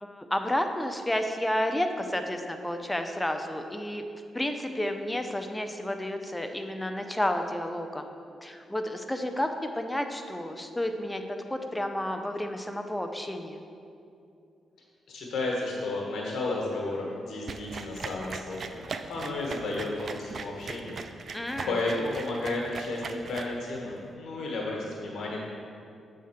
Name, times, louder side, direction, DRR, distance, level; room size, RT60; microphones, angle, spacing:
voice 1, 0.0-4.0 4.3-8.1 8.4-11.2 11.5-13.6 21.3-21.8, left 1 dB, 10° left, 6 dB, 0.6 m, -31 dB
voice 2, 15.1-25.4, left 2 dB, 75° left, -2 dB, 1.1 m, -33 dB
sound 1, 17.5-24.0, right 4 dB, 55° right, 0.4 m, -39 dB
7.3 x 3.6 x 5.7 m, 2.5 s
cardioid pair, 80°, 0 cm